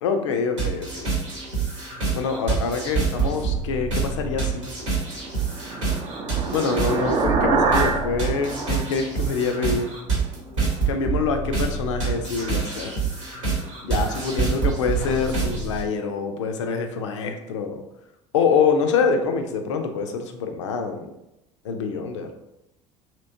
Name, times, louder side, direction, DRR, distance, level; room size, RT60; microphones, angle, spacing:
voice 1, 0.0-1.1 2.1-4.7 6.5-9.9 10.9-13.0 13.8-17.8 18.3-21.1 21.6-22.3, left 5 dB, 75° left, 6 dB, 0.4 m, -25 dB
sound 1, 0.6-15.8, right 4 dB, 80° right, 1.0 m, -27 dB
sound 2, 5.0-9.8, right 4 dB, 40° right, 0.5 m, -26 dB
2.9 x 2.9 x 2.6 m, 0.89 s
figure-of-eight pair, 60°, 16 cm